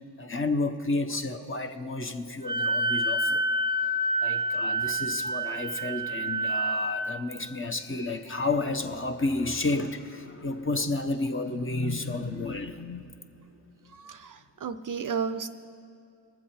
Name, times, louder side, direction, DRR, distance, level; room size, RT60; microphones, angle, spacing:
voice 1, 0.2-3.4 4.2-13.1, left 2 dB, 25° left, 7 dB, 0.8 m, -31 dB
Wind instrument woodwind instrument, 2.4-7.1, right 1 dB, 10° right, 0.8 m, -28 dB
voice 2, 13.9-15.5, right 6 dB, 45° right, 10 dB, 0.5 m, -33 dB
19.5 x 7.5 x 4.3 m, 2.4 s
cardioid pair, 60°, 47 cm